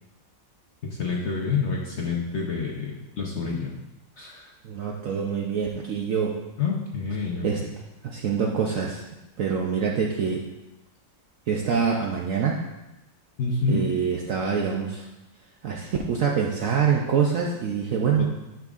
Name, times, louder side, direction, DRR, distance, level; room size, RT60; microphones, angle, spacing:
voice 1, 0.8-3.8 4.2-4.5 6.6-7.5 13.4-13.9 18.2-18.3, left 4 dB, 55° left, -2 dB, 0.8 m, -28 dB
voice 2, 4.6-6.4 7.4-7.6 8.0-9.0 9.4-10.5 11.5-12.6 13.7-15.1 15.6-18.3, right 6 dB, 65° right, 0 dB, 0.8 m, -25 dB
10.5 x 6.0 x 2.4 m, 0.99 s
omnidirectional pair, 2.0 m